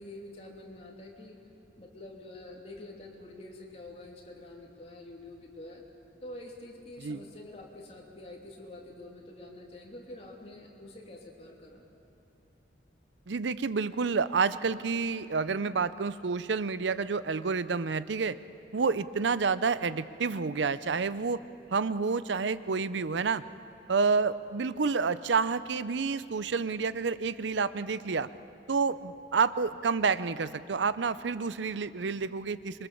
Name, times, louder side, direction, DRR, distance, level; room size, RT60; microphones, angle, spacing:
voice 1, 0.0-1.4 1.8-5.8 6.2-11.8, left 1 dB, 35° left, -1 dB, 3.0 m, -47 dB
voice 2, 13.3-18.4 18.7-21.4 21.7-23.4 23.9-28.3 28.7-32.9, right 5 dB, 85° right, 15 dB, 0.6 m, -29 dB
26.5 x 22.5 x 7.1 m, 2.8 s
head